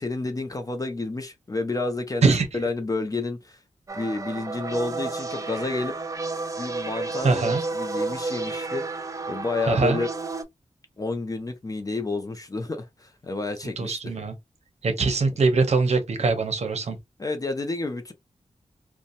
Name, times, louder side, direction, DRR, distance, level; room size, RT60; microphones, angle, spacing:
voice 1, 0.0-3.6 3.9-5.9 6.6-8.8 9.3-10.1 11.0-14.2 17.2-18.1, left 3 dB, 30° left, 0.5 m, -30 dB
sound 1, 3.9-10.4, right 3 dB, 30° right, 0.4 m, -31 dB
voice 2, 7.2-7.6 9.7-10.0 13.8-14.3 14.8-17.0, right 4 dB, 65° right, 0.7 m, -22 dB
2.7 x 2.1 x 2.5 m
wide cardioid pair, 110°, 12 cm